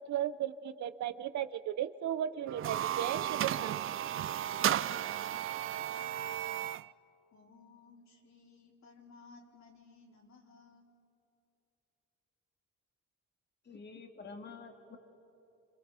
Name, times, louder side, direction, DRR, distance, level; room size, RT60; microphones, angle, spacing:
voice 1, 0.0-3.8, right 10 dB, 70° right, 14 dB, 0.8 m, -36 dB
sound 1, 2.5-6.9, right 11 dB, 45° right, 0.4 m, -34 dB
voice 2, 5.0-5.9 7.3-10.9, left 4 dB, 65° left, -2 dB, 4.5 m, -59 dB
voice 3, 13.7-15.0, left 4 dB, 35° left, 4 dB, 2.2 m, -48 dB
28.0 x 27.0 x 5.1 m, 2.8 s
cardioid pair, 90°, 30 cm